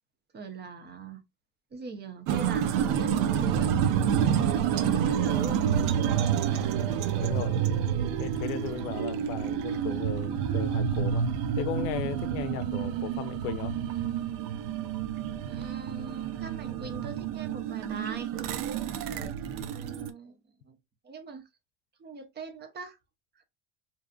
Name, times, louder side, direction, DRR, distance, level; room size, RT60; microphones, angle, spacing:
voice 1, 0.3-1.2 1.7-3.7 4.2-5.9 6.1-6.8 7.1-7.2 15.5-18.3 19.7-20.4 20.6-20.8 21.0-21.4 22.0-23.0 23.4-23.5, right 4 dB, 30° right, 0.7 m, -41 dB
sound 1, 2.3-20.1, right 8 dB, 65° right, 0.5 m, -28 dB
voice 2, 6.4-6.9 7.2-7.9 8.2-11.3 11.5-13.7 19.1-19.4, left 10 dB, 80° left, 0.5 m, -37 dB
2.6 x 2.4 x 2.2 m
supercardioid pair, 95°, 36 cm